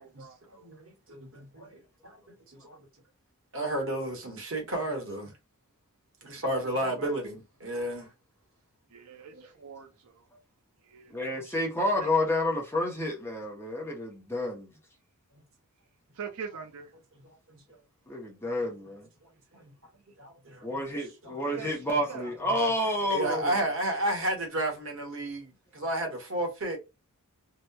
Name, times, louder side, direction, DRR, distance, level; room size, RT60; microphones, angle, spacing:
voice 1, 0.0-0.7 6.6-7.1 8.9-10.1 10.9-11.1 11.5-11.6 11.9-12.1 16.2-16.9 21.5-21.7 22.1-22.3, right 6 dB, 75° right, 0.5 m, -43 dB
voice 2, 0.6-2.2 2.5-2.8 3.5-5.3 6.2-8.1 9.3-9.5 15.3-15.4 16.2-16.3 17.1-17.6 18.6-18.7 19.5-19.7 20.2-20.8 21.2-21.7 21.9-22.6 23.1-26.8, right 1 dB, 60° right, 1.0 m, -33 dB
voice 3, 11.1-14.7 18.1-19.1 20.6-23.7, left 1 dB, 10° left, 0.7 m, -30 dB
2.8 x 2.1 x 2.2 m
head